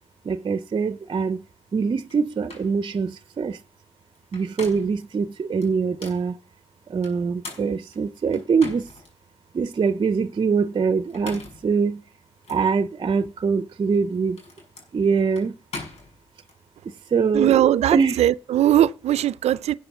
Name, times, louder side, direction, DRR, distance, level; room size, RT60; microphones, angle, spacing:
voice 1, 0.3-1.4 1.7-3.6 4.3-6.4 6.9-8.9 9.5-12.0 12.5-14.4 14.9-15.5 17.1-18.2, right 5 dB, 45° right, 0.7 m, -23 dB
sound 1, 2.1-2.2 2.5-2.7 4.2-5.0 5.6-6.2 7.0-9.1 9.6-9.7 11.0-11.7 12.4-12.6 13.8-16.6, left 3 dB, 80° left, 6.0 m, -40 dB
voice 2, 17.3-19.7, right 12 dB, 80° right, 0.5 m, -20 dB
12.5 x 7.8 x 6.0 m
cardioid pair, 75°, 11 cm